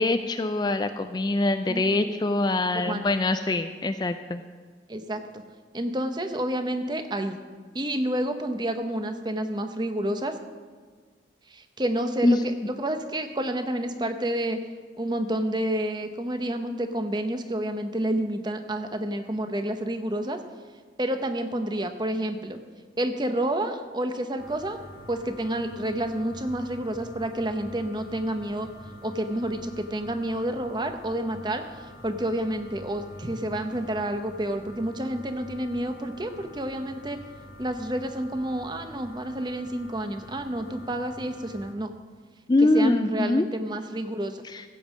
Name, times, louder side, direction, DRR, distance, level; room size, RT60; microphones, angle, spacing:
voice 1, 0.0-4.4 12.2-12.4 42.5-43.5 44.4-44.6, left 2 dB, 25° left, 9 dB, 0.3 m, -24 dB
voice 2, 1.7-2.1 2.7-3.0 4.9-5.4 5.7-7.4 7.7-10.4 11.5-14.6 15.0-20.4 21.0-22.6 23.0-24.8 25.1-28.7 29.0-37.2 37.6-41.9 42.7-44.4, right 1 dB, 25° right, 7 dB, 0.8 m, -29 dB
sound 1, 24.4-41.7, left 1 dB, 75° left, 2.1 m, -46 dB
15.5 x 5.4 x 7.4 m, 1.5 s
head